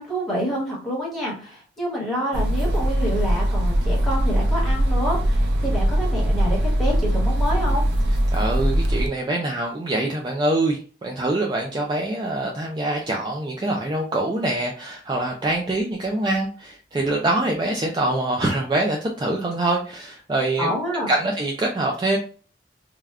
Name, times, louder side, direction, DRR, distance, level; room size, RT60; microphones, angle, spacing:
voice 1, 0.0-7.8 20.6-21.1, equal, ahead, -6 dB, 1.2 m, -27 dB
sound 1, 2.3-9.1, equal, 80° right, 0.5 m, -21 dB
voice 2, 8.3-20.7 21.1-22.2, right 2 dB, 25° right, 0 dB, 0.3 m, -24 dB
3.4 x 2.3 x 2.3 m, 0.39 s
head